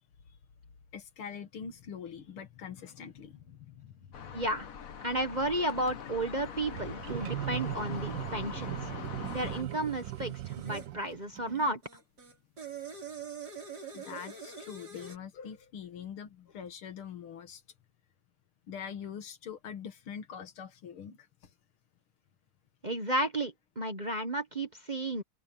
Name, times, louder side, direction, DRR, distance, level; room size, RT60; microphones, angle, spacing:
voice 1, 0.9-4.4 13.9-17.6 18.7-21.3 25.2-25.3, left 7 dB, 85° left, 2.5 m, -44 dB
sound 1, 4.1-9.6, left 7 dB, 45° left, 1.4 m, -43 dB
voice 2, 4.3-4.7 5.0-8.9 9.3-11.8 22.8-25.2, right 1 dB, 25° right, 1.2 m, -33 dB
sound 2, 5.5-5.9 6.7-11.7, right 14 dB, 70° right, 1.4 m, -39 dB
sound 3, 9.3-10.9 11.8-15.2, right 6 dB, 50° right, 4.6 m, -45 dB
open air
omnidirectional pair, 2.3 m